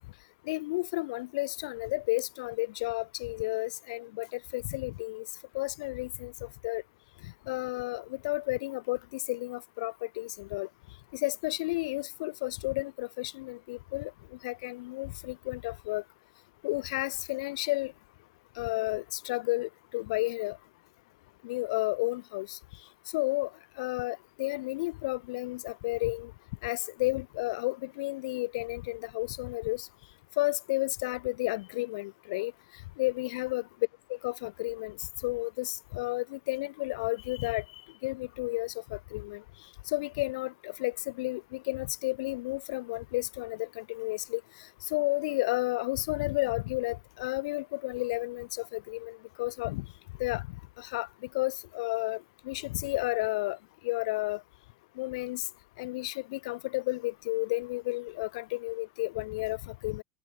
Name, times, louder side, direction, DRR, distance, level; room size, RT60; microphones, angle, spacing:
voice 1, 0.5-5.3 5.5-6.8 7.5-10.7 11.1-14.1 14.4-16.0 16.6-17.9 18.6-20.6 21.4-22.6 23.1-23.5 23.8-26.3 26.6-29.9 30.4-32.5 33.0-33.6 34.1-35.0 35.2-37.6 38.0-39.4 39.9-44.4 44.8-49.8 50.2-50.4 50.8-51.1 51.3-53.6 53.8-54.4 55.0-55.5 55.8-60.0, left 21 dB, 90° left, 4.4 m, -32 dB
cardioid pair, 140°, 3 cm